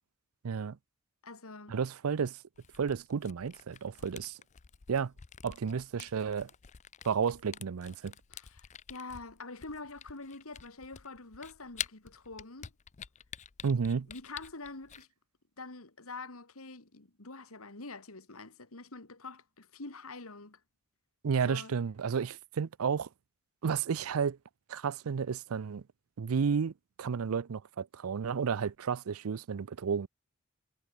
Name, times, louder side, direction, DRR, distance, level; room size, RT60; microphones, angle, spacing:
voice 1, 0.4-0.8 1.7-2.4 2.8-4.4 4.9-5.1 5.4-6.5 7.0-8.1 13.6-14.1 21.2-23.1 23.6-24.4 24.7-25.8 26.2-26.7 27.0-30.1, right 6 dB, 85° right, 0.5 m, -32 dB
voice 2, 1.2-1.8 8.3-12.7 14.1-15.1 15.6-20.6 21.5-21.7, left 3 dB, 85° left, 2.8 m, -46 dB
Camera, 2.6-15.0, left 9 dB, 35° left, 0.5 m, -47 dB
head